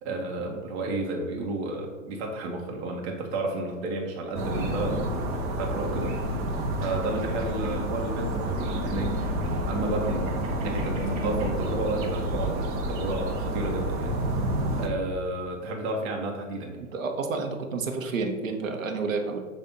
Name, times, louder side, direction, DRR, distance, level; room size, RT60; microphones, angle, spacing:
voice 1, 0.0-5.3 5.6-6.2 6.8-14.1 14.8-16.8, right 2 dB, 55° right, 0 dB, 1.2 m, -32 dB
sound 1, 4.3-14.9, right 1 dB, 35° right, 1.1 m, -29 dB
voice 2, 16.9-19.4, right 4 dB, 75° right, 4 dB, 1.1 m, -30 dB
6.8 x 2.7 x 5.3 m, 1.4 s
hypercardioid pair, 115°, 40 cm